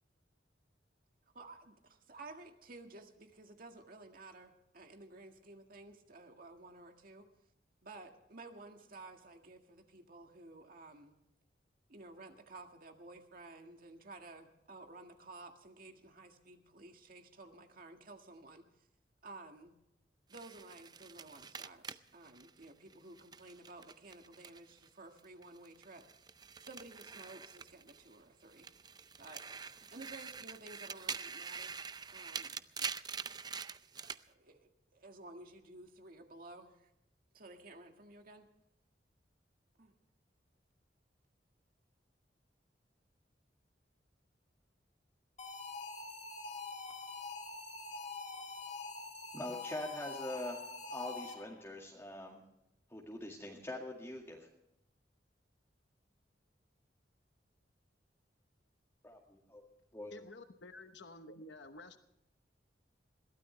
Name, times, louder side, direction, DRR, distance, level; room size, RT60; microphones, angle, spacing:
voice 1, 1.3-1.8 2.1-7.3 7.8-11.1 11.9-18.6 19.2-19.7 20.3-26.1 26.6-28.9 29.2-31.8 32.1-32.5 33.9-36.8 37.3-38.5 39.8-39.9, right 2 dB, 55° right, 4 dB, 1.8 m, -53 dB
sound 1, 20.3-24.9 25.2-28.2 28.5-34.2, right 6 dB, 25° right, 0.5 m, -45 dB
sound 2, 45.4-51.7, left 3 dB, 40° left, 2.0 m, -45 dB
voice 2, 49.3-50.6 50.9-52.4 52.9-54.4 59.0-59.6 59.9-60.2, left 1 dB, 15° left, -2 dB, 2.0 m, -43 dB
voice 3, 60.1-62.0, left 2 dB, 85° left, 8 dB, 1.1 m, -51 dB
22.0 x 16.0 x 3.3 m, 0.85 s
head